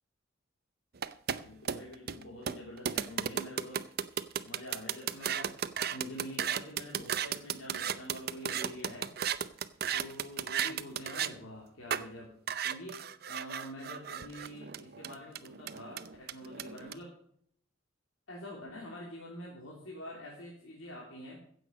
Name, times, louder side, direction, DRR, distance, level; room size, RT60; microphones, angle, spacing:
sound 1, 1.0-11.3 11.9-12.0 12.5-16.9, right 8 dB, 50° right, 0.6 m, -34 dB
voice 1, 1.4-3.9 4.4-5.5 5.9-9.1 9.9-12.4 12.6-17.2 18.3-21.4, equal, 85° left, -3 dB, 3.1 m, -46 dB
15.5 x 7.9 x 5.2 m, 0.64 s
head